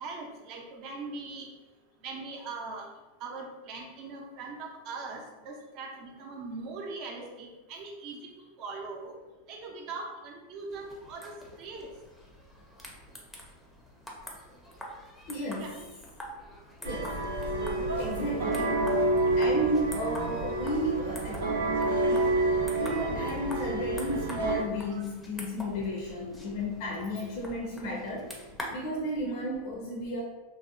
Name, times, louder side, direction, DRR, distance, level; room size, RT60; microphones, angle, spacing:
voice 1, 0.0-1.5 2.0-2.9 3.2-8.2 8.6-9.1 9.5-11.9 15.6-15.7 24.9-25.0, right 3 dB, 50° right, 0 dB, 0.6 m, -41 dB
sound 1, 10.7-28.9, equal, 10° left, 0.5 m, -46 dB
voice 2, 15.3-15.8 16.8-17.2 18.0-18.8 19.4-21.5 22.7-28.3 28.7-30.2, equal, 55° left, -2 dB, 0.5 m, -33 dB
sound 2, 16.8-24.6, right 2 dB, 85° right, 0.6 m, -28 dB
2.6 x 2.0 x 2.5 m, 1.1 s
hypercardioid pair, 120°, 0 cm